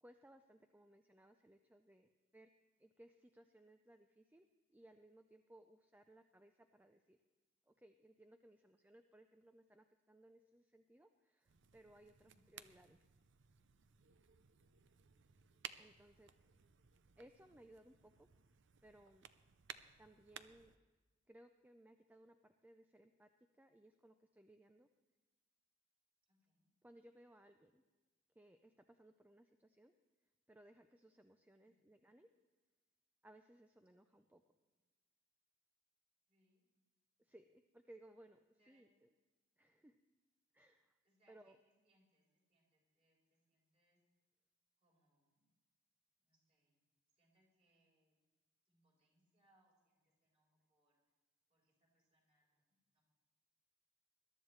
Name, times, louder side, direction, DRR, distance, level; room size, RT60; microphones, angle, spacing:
voice 1, 0.0-2.5 2.8-7.2 7.7-13.0 15.8-16.3 17.2-18.3 18.8-19.3 20.0-20.7 21.3-23.3 23.6-24.9 26.8-27.8 28.4-29.9 30.5-32.3 33.2-34.4 37.2-39.1 39.6-40.0 40.5-40.9 41.3-41.6, right 1 dB, 10° right, 7 dB, 0.4 m, -64 dB
sound 1, 11.4-20.8, right 9 dB, 60° right, 0.5 m, -58 dB
voice 2, 12.2-12.7 14.6-15.0 26.3-26.7 31.6-31.9 33.9-34.3 36.3-36.6 38.6-38.9 41.0-44.0 44.8-45.5 46.2-46.8 47.1-48.1 48.6-51.0 51.5-53.0, right 1 dB, 30° right, -2 dB, 4.3 m, -80 dB
21.5 x 12.5 x 3.2 m, 1.2 s
head